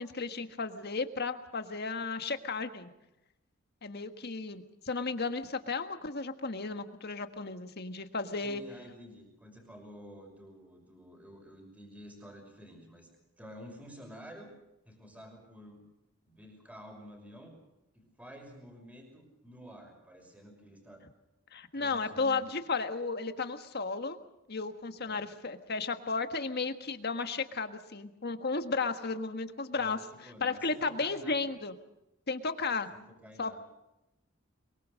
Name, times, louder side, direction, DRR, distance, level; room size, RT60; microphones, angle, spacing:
voice 1, 0.0-2.9 3.8-8.6 21.5-24.2 24.5-30.0 30.4-31.7 32.3-32.9 33.4-33.6, left 4 dB, 50° left, 8 dB, 1.5 m, -34 dB
voice 2, 8.4-13.1 13.4-14.5 14.9-15.8 16.2-17.5 17.9-21.0 21.7-22.6 25.1-25.3 29.8-31.5 32.9-33.6, equal, 5° right, 2 dB, 5.6 m, -50 dB
23.5 x 22.5 x 6.5 m, 0.90 s
head